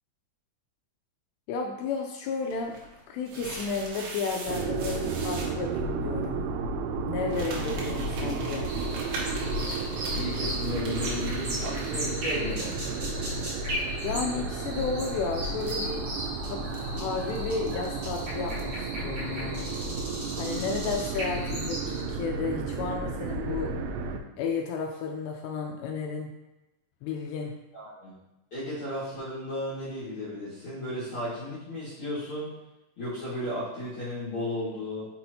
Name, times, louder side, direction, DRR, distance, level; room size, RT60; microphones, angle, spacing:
voice 1, 1.5-2.8 3.1-6.4 7.1-8.7 14.0-16.1 16.4-19.7 20.4-23.7 24.4-26.3 27.0-27.5, left 5 dB, 85° left, 2 dB, 2.4 m, -33 dB
sound 1, 2.5-5.5 7.3-13.1 13.4-13.5 14.7-18.7, right 3 dB, 70° right, 3.0 m, -42 dB
sound 2, 4.5-24.2, right 3 dB, 90° right, 3.1 m, -32 dB
sound 3, 8.6-22.0, equal, 45° right, 1.6 m, -37 dB
voice 2, 10.1-12.8 20.5-20.8 27.7-28.1 28.5-32.5 33.0-35.1, left 1 dB, 55° left, -11 dB, 1.4 m, -34 dB
6.1 x 6.0 x 2.8 m, 1.0 s
omnidirectional pair, 5.5 m